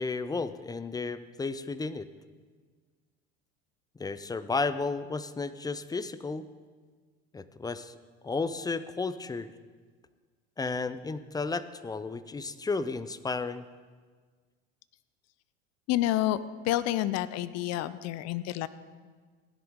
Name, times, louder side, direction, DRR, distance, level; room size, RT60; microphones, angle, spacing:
voice 1, 0.0-2.1 4.0-6.5 7.3-7.9 8.2-9.5 10.6-13.6, left 4 dB, 10° left, 14 dB, 0.5 m, -33 dB
voice 2, 15.9-16.4 16.6-18.7, left 14 dB, 50° left, 16 dB, 0.6 m, -28 dB
16.0 x 10.5 x 3.7 m, 1.5 s
hypercardioid pair, 80°, 33 cm